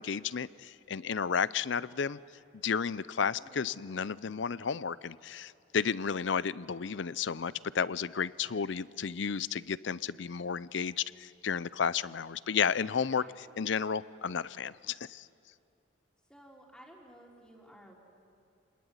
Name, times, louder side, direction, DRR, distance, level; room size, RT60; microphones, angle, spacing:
voice 1, 0.0-2.2 2.6-15.3, left 6 dB, 70° left, 19 dB, 0.5 m, -32 dB
voice 2, 3.4-3.8 13.1-13.4 16.3-18.0, equal, 5° left, -1 dB, 3.4 m, -55 dB
29.0 x 20.0 x 9.6 m, 2.6 s
head